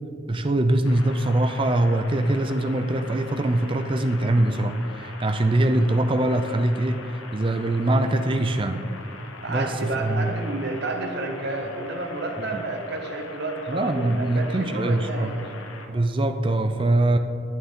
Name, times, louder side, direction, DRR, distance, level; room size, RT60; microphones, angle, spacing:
voice 1, 0.3-8.8 9.5-10.3 13.7-15.3 15.9-17.2, right 1 dB, 25° right, 8 dB, 0.4 m, -23 dB
sound 1, 0.8-15.8, left 3 dB, 80° left, 1.0 m, -42 dB
voice 2, 9.4-15.4, right 2 dB, 55° right, 4 dB, 0.8 m, -30 dB
11.0 x 9.1 x 3.6 m, 2.6 s
head